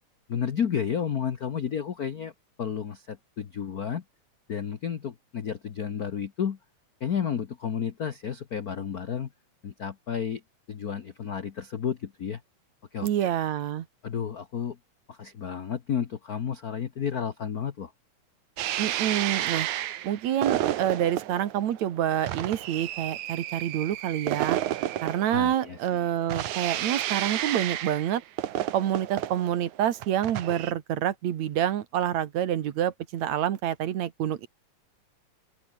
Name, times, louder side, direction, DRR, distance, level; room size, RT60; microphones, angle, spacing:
voice 1, 0.3-2.3 2.6-4.0 4.5-6.6 7.0-9.3 9.6-10.4 10.7-12.4 12.9-13.3 14.0-14.8 15.1-17.9 25.3-26.0, left 8 dB, 65° left, 0.9 m, -31 dB
voice 2, 13.0-13.9 18.8-19.7 20.0-24.6 25.0-28.2 28.7-34.5, right 11 dB, 75° right, 2.7 m, -27 dB
sound 1, 18.6-30.7, right 13 dB, 90° right, 2.6 m, -31 dB
open air
omnidirectional pair, 3.3 m